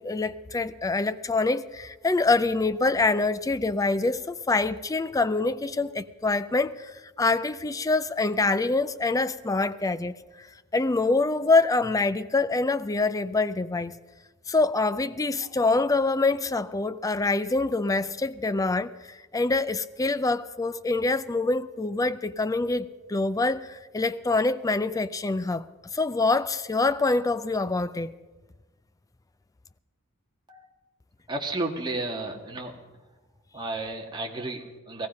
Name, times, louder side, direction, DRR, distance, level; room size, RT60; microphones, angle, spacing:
voice 1, 0.0-10.5 10.7-13.9 14.5-25.6 25.9-28.1, left 3 dB, 15° left, 0.4 m, -25 dB
voice 2, 31.3-32.8 33.5-35.1, right 2 dB, 20° right, 1.6 m, -32 dB
18.0 x 15.0 x 5.3 m
head